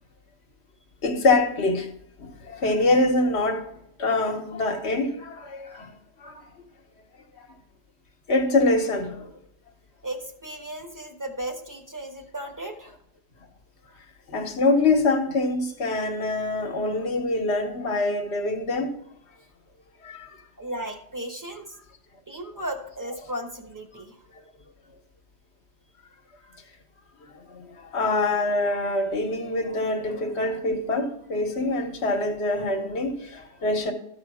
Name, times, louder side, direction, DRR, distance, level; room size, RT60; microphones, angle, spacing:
voice 1, 1.0-1.9 2.2-3.7 4.0-5.9 6.2-6.4 8.3-9.3 14.3-18.9 20.0-20.3 27.5-27.6 27.9-33.9, left 2 dB, 70° left, 1.5 m, -24 dB
voice 2, 10.0-12.9 20.6-21.7 22.3-24.2, right 1 dB, 20° right, 1.0 m, -35 dB
13.5 x 4.9 x 4.8 m
omnidirectional pair, 1.1 m